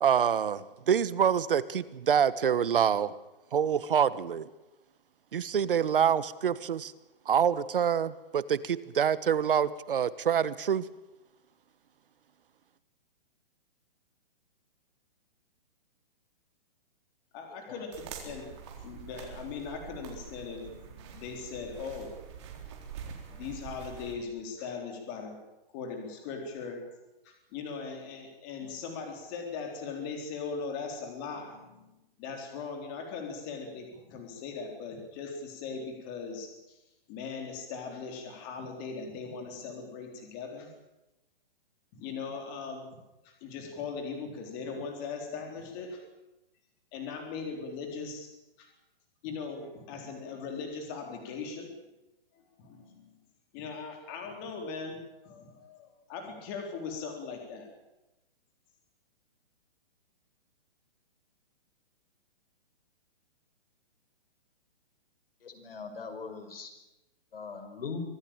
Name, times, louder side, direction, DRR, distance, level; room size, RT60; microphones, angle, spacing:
voice 1, 0.0-3.1 3.5-4.5 5.3-6.9 7.3-10.9, right 8 dB, 65° right, 16 dB, 1.3 m, -26 dB
voice 2, 17.3-22.1 23.3-25.4 25.7-26.8 27.2-36.8 37.1-40.7 41.9-42.9 43.2-46.0 46.9-48.3 48.6-48.7 49.2-51.8 52.3-53.3 53.5-57.7, left 5 dB, 20° left, 3 dB, 3.9 m, -39 dB
sound 1, 17.9-24.1, right 7 dB, 30° right, 4.0 m, -45 dB
voice 3, 65.4-66.7 67.3-68.0, left 5 dB, 75° left, 8 dB, 5.5 m, -40 dB
25.0 x 17.0 x 9.0 m, 0.98 s
hypercardioid pair, 175°, 29 cm